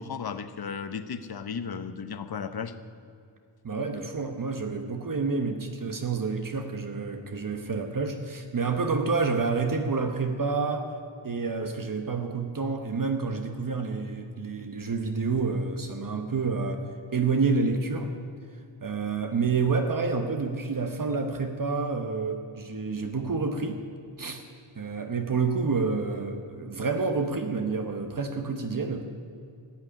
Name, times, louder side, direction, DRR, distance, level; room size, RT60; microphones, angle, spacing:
voice 1, 0.0-2.7, left 6 dB, 50° left, 11 dB, 0.9 m, -35 dB
voice 2, 3.6-10.9 11.2-16.8 17.1-18.1 18.8-23.8 24.2-24.4 24.7-29.0, right 4 dB, 45° right, 5 dB, 1.1 m, -28 dB
15.5 x 8.9 x 9.9 m, 2.4 s
wide cardioid pair, 155°, 47 cm